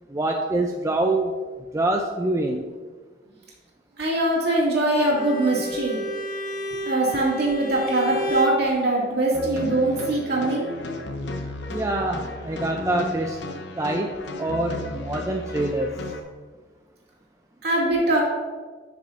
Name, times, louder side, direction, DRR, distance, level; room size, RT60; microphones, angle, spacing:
voice 1, 0.1-1.3 1.7-2.7 11.7-13.4 13.8-14.1 14.4-15.9, right 2 dB, 15° right, 1 dB, 0.4 m, -25 dB
voice 2, 4.0-6.0 6.9-10.7 17.6-18.2, right 2 dB, 60° right, -4 dB, 2.2 m, -22 dB
Bowed string instrument, 4.9-8.6, equal, 50° left, 1.1 m, -31 dB
sound 1, 9.3-16.2, left 2 dB, 70° left, 0.8 m, -34 dB
11.0 x 6.0 x 2.5 m, 1.4 s
head